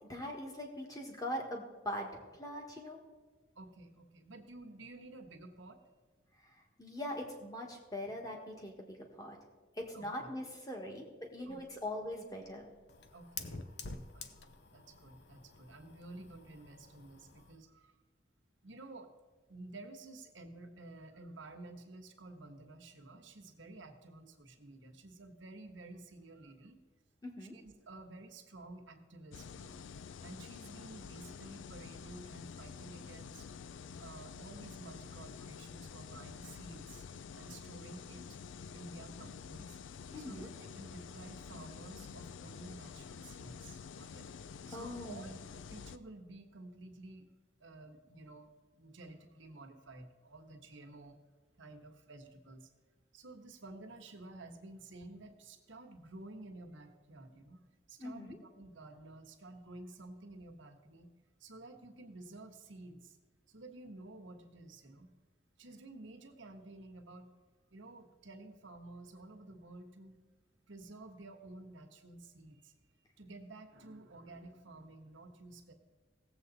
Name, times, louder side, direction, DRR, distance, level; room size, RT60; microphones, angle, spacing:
voice 1, 0.0-3.0 6.8-9.4 9.8-12.7 27.2-27.5 40.1-40.5 44.7-45.4 58.0-58.4, left 1 dB, 20° left, 1 dB, 1.6 m, -42 dB
voice 2, 3.6-5.8 9.9-10.3 10.8-10.9 11.5-11.8 13.1-14.4 14.7-18.0 18.6-19.1 19.5-26.8 27.5-29.8 30.2-33.5 34.0-37.0 37.3-38.4 38.7-39.8 40.2-44.3 44.7-45.3 45.7-47.3 47.6-51.2 51.6-52.7 53.1-57.6 57.9-61.1 61.4-63.2 63.5-65.1 65.6-67.3 67.7-70.2 70.7-72.7 73.2-75.7, right 2 dB, 80° right, 4 dB, 1.3 m, -52 dB
Fire, 11.4-17.6, left 4 dB, 60° left, 0.7 m, -50 dB
sound 1, 29.3-46.0, left 6 dB, 75° left, 0.4 m, -49 dB
17.0 x 7.8 x 4.0 m, 1.3 s
head